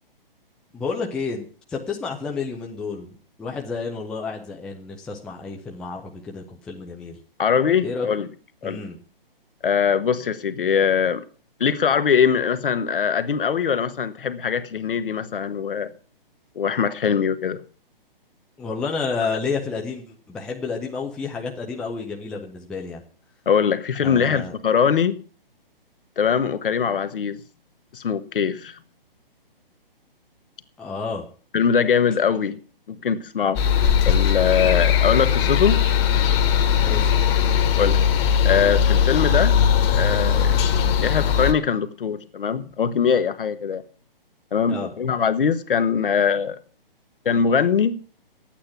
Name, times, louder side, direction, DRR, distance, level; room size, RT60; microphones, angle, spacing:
voice 1, 0.7-7.2 7.8-8.1 8.6-9.0 18.6-23.0 24.0-24.6 30.8-31.2 36.8-37.1 44.7-44.9, left 4 dB, 5° left, 0.5 m, -30 dB
voice 2, 7.4-8.3 8.6-8.8 9.6-11.2 11.6-15.9 16.5-17.6 23.5-25.2 26.2-27.4 27.9-28.8 31.5-32.6 32.9-33.6 34.1-35.8 37.8-38.0 38.4-39.6 39.9-40.6 41.0-43.8 44.5-46.6 47.2-48.0, left 7 dB, 65° left, 1.2 m, -22 dB
sound 1, 33.6-41.5, left 8 dB, 30° left, 1.5 m, -19 dB
11.5 x 8.9 x 5.8 m
hypercardioid pair, 145°, 29 cm